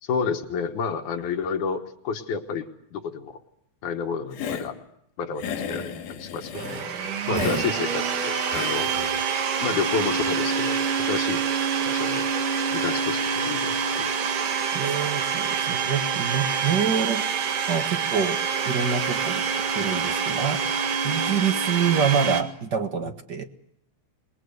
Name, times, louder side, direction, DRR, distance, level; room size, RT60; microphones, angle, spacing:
voice 1, 0.0-3.4 3.8-4.8 5.2-6.9 7.3-8.9 9.6-10.8 11.1-11.4 11.9-12.3 12.7-14.1 23.0-23.1, left 5 dB, 70° left, 3 dB, 2.7 m, -30 dB
Hiss, 4.3-4.7 5.4-6.9 7.3-7.7 8.5-9.2, left 7 dB, 90° left, 3.7 m, -33 dB
Domestic sounds home sounds, 6.5-22.4, right 6 dB, 80° right, 3.4 m, -26 dB
voice 2, 7.2-7.6 14.7-17.2 17.7-18.4 18.6-19.4 19.7-20.6 21.0-23.5, right 7 dB, 45° right, 7 dB, 1.6 m, -26 dB
26.5 x 21.5 x 6.5 m, 0.73 s
omnidirectional pair, 3.6 m